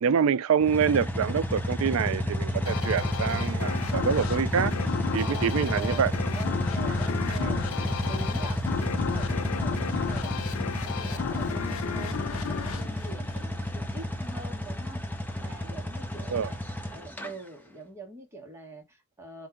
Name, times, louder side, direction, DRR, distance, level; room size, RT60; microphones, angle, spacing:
voice 1, 0.0-4.7 5.1-6.1 7.4-7.5 16.3-16.5, right 7 dB, 70° right, 0.4 m, -26 dB
sound 1, 0.6-17.3, left 1 dB, 10° left, 0.6 m, -31 dB
sound 2, 2.7-13.9, left 7 dB, 75° left, 0.4 m, -34 dB
voice 2, 5.1-16.6 16.9-19.5, right 3 dB, 10° right, 1.3 m, -44 dB
4.4 x 2.6 x 3.6 m
head